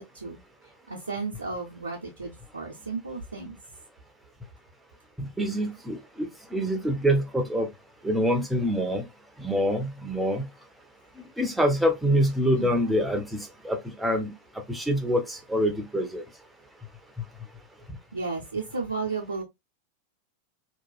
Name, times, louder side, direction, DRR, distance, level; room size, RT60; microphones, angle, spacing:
voice 1, 0.9-3.6 12.6-12.7 18.1-19.4, right 4 dB, 80° right, 0.6 m, -33 dB
voice 2, 5.2-7.7 8.0-9.1 9.4-10.5 11.4-14.3 14.7-16.2, equal, 5° right, 0.6 m, -26 dB
2.9 x 2.3 x 2.3 m
figure-of-eight pair, 90°, 0 cm